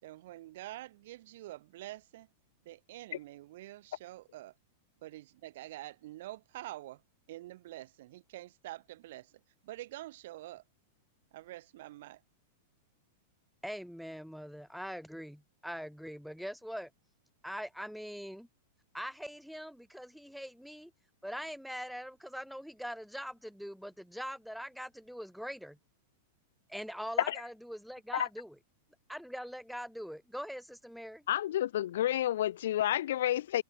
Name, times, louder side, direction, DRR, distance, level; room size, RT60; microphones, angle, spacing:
voice 1, 0.0-2.3 2.6-4.5 5.0-7.0 7.3-9.3 9.6-10.6 11.3-12.2, right 16 dB, 65° right, 4.6 m, -46 dB
voice 2, 13.6-16.9 17.4-18.5 18.9-20.9 21.2-25.8 26.7-28.6 29.1-31.2, equal, ahead, 2.4 m, -42 dB
voice 3, 31.3-33.6, left 12 dB, 75° left, 2.2 m, -30 dB
hypercardioid pair, 135°, 0 cm